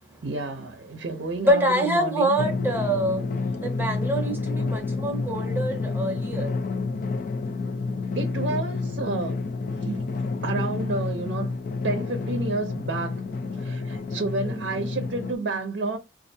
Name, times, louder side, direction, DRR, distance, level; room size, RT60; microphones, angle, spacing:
voice 1, 0.2-2.4 8.1-9.4 9.8-10.0 10.4-11.6 11.8-13.2 13.6-16.0, right 3 dB, 65° right, 0.5 m, -30 dB
voice 2, 1.4-3.2 3.6-6.5 14.5-14.6, right 1 dB, 10° right, 0.7 m, -25 dB
Drum, 2.4-15.3, left 3 dB, 45° left, 0.3 m, -29 dB
4.2 x 2.4 x 2.6 m
head